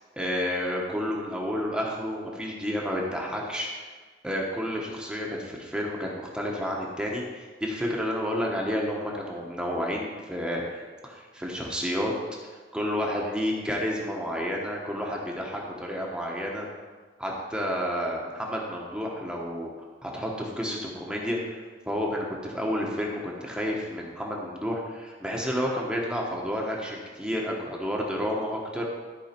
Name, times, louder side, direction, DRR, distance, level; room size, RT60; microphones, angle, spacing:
voice 1, 0.2-3.9 4.2-12.1 12.4-16.7 17.2-19.7 20.0-21.6 21.8-28.8, equal, 5° right, -2 dB, 1.1 m, -30 dB
13.5 x 4.7 x 4.4 m, 1.4 s
head